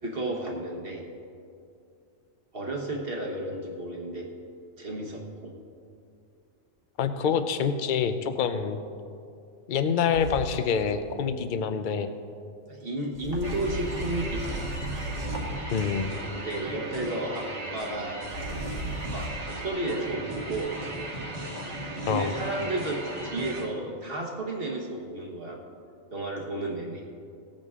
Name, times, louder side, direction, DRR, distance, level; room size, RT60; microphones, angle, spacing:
voice 1, 0.0-1.0 2.5-4.3 4.8-5.5 12.7-14.7 16.3-18.3 19.0-20.7 22.1-25.6 26.1-27.1, right 2 dB, 45° right, 0 dB, 1.5 m, -32 dB
voice 2, 7.0-8.8 9.7-12.1 15.7-16.1 22.0-22.3, left 6 dB, 50° left, 9 dB, 0.7 m, -26 dB
sound 1, 10.1-11.1 13.1-16.2 18.2-19.3, right 1 dB, 65° right, 1.9 m, -36 dB
sound 2, 13.4-23.7, right 1 dB, 30° right, 1.4 m, -36 dB
18.0 x 8.9 x 3.7 m, 2.5 s
omnidirectional pair, 1.3 m